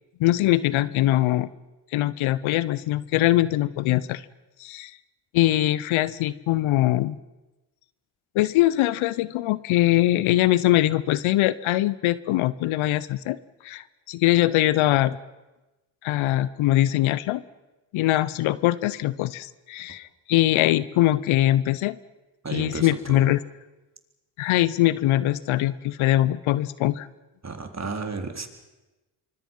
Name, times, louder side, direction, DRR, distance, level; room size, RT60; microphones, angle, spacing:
voice 1, 0.2-1.5 1.9-4.2 4.6-5.0 5.3-7.2 8.3-13.4 13.6-15.2 16.0-17.4 17.9-22.0 22.5-23.4 24.4-27.1, left 15 dB, 75° left, 18 dB, 0.9 m, -22 dB
voice 2, 22.4-23.3 27.4-28.5, right 4 dB, 35° right, 5 dB, 3.8 m, -32 dB
26.0 x 24.5 x 5.6 m, 1.1 s
hypercardioid pair, 40°, 48 cm